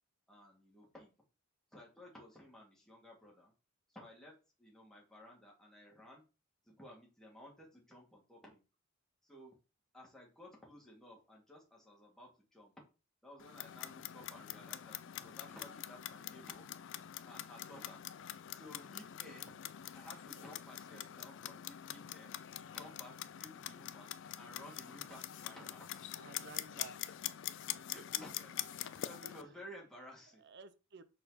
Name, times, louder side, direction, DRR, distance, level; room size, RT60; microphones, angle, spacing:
voice 1, 0.3-1.1 1.7-3.5 3.9-6.2 6.6-8.6 9.2-9.6 9.9-12.7 13.2-16.7 17.3-18.0 18.5-19.5 19.9-22.4 22.7-26.1 27.9-30.4, left 1 dB, ahead, 2.3 m, -55 dB
Clock, 13.4-29.4, left 12 dB, 60° left, 0.4 m, -45 dB
sound 1, 15.4-15.9 17.6-17.8 19.9-20.6 22.4-22.6 25.2-25.7 28.7-29.0, left 5 dB, 35° left, 1.3 m, -69 dB
voice 2, 26.2-27.2 27.7-27.8 29.2-29.7 30.4-31.0, right 4 dB, 55° right, 0.7 m, -55 dB
5.8 x 4.5 x 4.1 m
head